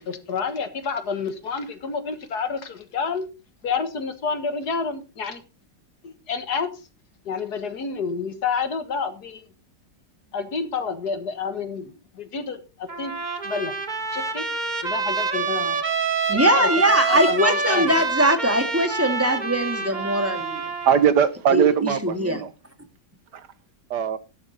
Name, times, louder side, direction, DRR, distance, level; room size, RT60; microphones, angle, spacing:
voice 1, 0.0-3.3 3.6-5.4 6.0-6.7 7.3-9.4 10.3-13.1 13.4-13.7 14.1-14.5 14.8-15.8 16.3-16.7 17.1-17.9, left 5 dB, 65° left, 2.0 m, -29 dB
Trumpet, 12.9-21.1, right 4 dB, 25° right, 1.3 m, -26 dB
voice 2, 16.3-20.7 21.5-22.4, right 1 dB, 10° right, 1.6 m, -21 dB
voice 3, 20.8-22.5 23.3-23.5 23.9-24.2, right 8 dB, 70° right, 1.5 m, -20 dB
12.5 x 11.5 x 3.9 m
omnidirectional pair, 1.9 m